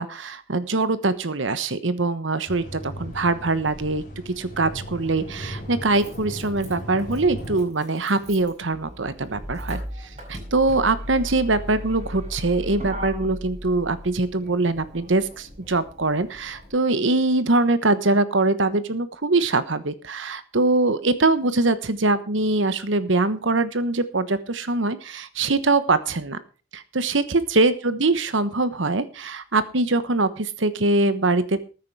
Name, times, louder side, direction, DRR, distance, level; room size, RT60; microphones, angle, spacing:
voice 1, 0.0-26.4 26.7-31.6, right 2 dB, 75° right, 13 dB, 1.2 m, -23 dB
sound 1, 2.5-7.6, equal, 40° left, 4.0 m, -37 dB
Motor vehicle (road), 5.6-16.7, equal, 35° right, 4.8 m, -37 dB
14.0 x 9.6 x 4.8 m, 0.35 s
head